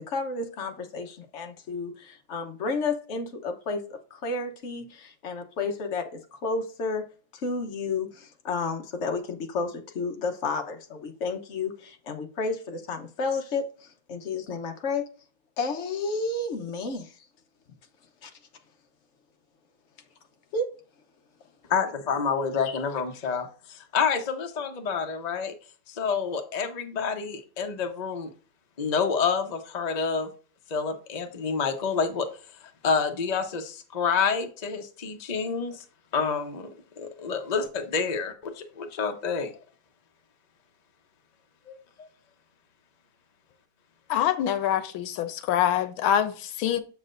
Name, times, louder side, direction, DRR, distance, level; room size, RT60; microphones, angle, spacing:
voice 1, 0.1-7.1 7.3-15.0 15.6-17.2 18.2-18.3 20.5-20.7, left 3 dB, 50° left, 1.0 m, -31 dB
voice 2, 21.7-25.5 25.9-28.3 28.8-30.3 30.7-32.3 32.8-35.8 36.1-39.5 41.7-42.1, left 5 dB, 65° left, 0.4 m, -28 dB
voice 3, 44.1-46.8, left 10 dB, 85° left, 1.5 m, -25 dB
7.2 x 6.5 x 2.6 m
omnidirectional pair, 2.2 m